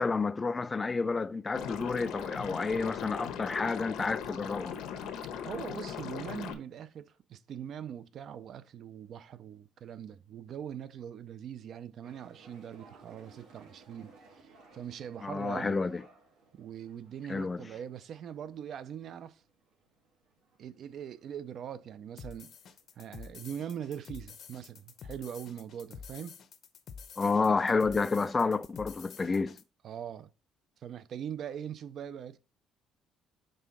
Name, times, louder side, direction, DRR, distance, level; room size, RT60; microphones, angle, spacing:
voice 1, 0.0-4.8 15.2-16.0 17.3-17.7 27.2-29.6, left 4 dB, 20° left, 0.3 m, -30 dB
Liquid, 1.5-6.5, left 8 dB, 80° left, 1.1 m, -39 dB
voice 2, 5.4-15.8 16.5-19.4 20.6-22.5 23.0-26.3 29.8-30.3 30.8-32.4, right 9 dB, 50° right, 0.5 m, -42 dB
sound 1, 12.0-26.3, right 4 dB, 85° right, 2.4 m, -62 dB
sound 2, 22.2-29.6, left 6 dB, 45° left, 0.7 m, -49 dB
5.5 x 3.6 x 5.9 m
cardioid pair, 145°, 0 cm